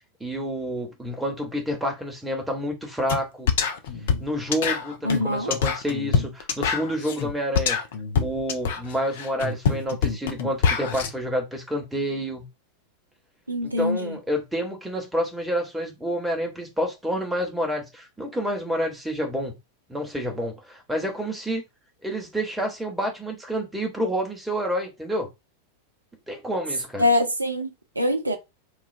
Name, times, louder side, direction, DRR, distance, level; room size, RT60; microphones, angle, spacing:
voice 1, 0.2-3.5 4.2-7.8 8.2-12.5 13.6-19.6 19.9-21.6 22.0-25.3 26.3-27.0, equal, 5° right, 1.0 m, -29 dB
sound 1, 3.1-3.2 3.5-11.1, left 6 dB, 55° left, 0.5 m, -25 dB
voice 2, 5.0-5.5 13.5-14.2 27.0-27.7 28.0-28.4, left 1 dB, 80° right, 0.5 m, -23 dB
3.1 x 2.2 x 2.6 m
figure-of-eight pair, 90°, 0 cm